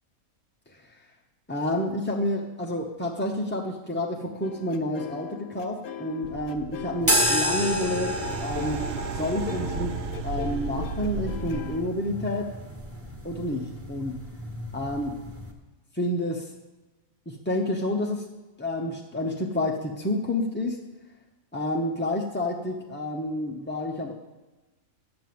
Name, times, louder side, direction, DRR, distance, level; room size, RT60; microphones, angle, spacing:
voice 1, 1.5-8.9 9.1-12.5 13.2-14.3 14.7-15.2 15.9-16.5 17.3-18.3 18.6-20.8 21.5-24.1, left 1 dB, 15° left, -1 dB, 0.4 m, -29 dB
sound 1, 4.4-11.8, left 9 dB, 85° left, 1.1 m, -40 dB
sound 2, 6.2-11.8, right 5 dB, 60° right, 0.7 m, -35 dB
sound 3, 7.0-15.5, equal, 10° right, 1.1 m, -31 dB
8.9 x 6.7 x 7.6 m, 1.1 s
omnidirectional pair, 1.5 m